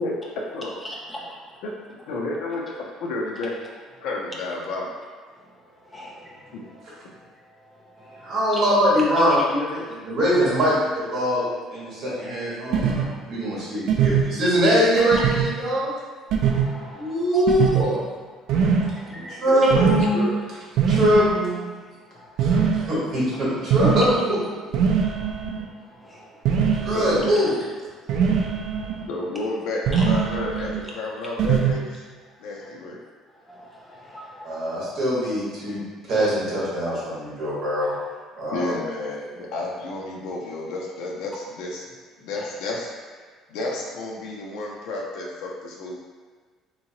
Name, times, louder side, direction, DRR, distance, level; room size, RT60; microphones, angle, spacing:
voice 1, 0.8-1.2 5.3-8.4 9.1-9.5 10.0-10.2 12.3-12.4 13.4-13.5 13.9-14.1 15.7-15.8 16.2-18.0 18.3-19.8 21.8-23.0 25.1-26.9 27.9-29.1 29.9-30.1 31.2-31.3 32.3-32.7 33.3-34.7 35.6-35.8 42.3-42.5, equal, 5° left, -3 dB, 0.4 m, -42 dB
voice 2, 2.1-3.6 4.0-4.9 6.5-6.6 19.5-20.3 26.9-27.3 29.1-32.0 32.4-33.0 38.5-46.0, left 2 dB, 70° left, -2 dB, 0.5 m, -31 dB
voice 3, 8.2-11.4 11.7-15.9 16.9-18.0 19.0-20.2 20.9-21.6 22.4-24.4 26.8-27.5 34.4-35.8 36.1-37.9 38.4-38.7, equal, 40° right, -7 dB, 1.4 m, -22 dB
sound 1, 12.7-13.0 13.9-14.2 15.1-15.5 16.3-16.6 17.5-17.8 18.5-18.9 19.7-20.1 20.8-21.3 22.4-22.8 23.7-24.2 24.7-25.6 26.5-27.3 28.1-29.1 29.9-30.8 31.4-31.7, right 7 dB, 60° right, 0.4 m, -21 dB
3.6 x 2.9 x 2.8 m, 1.5 s
cardioid pair, 180°, 0 cm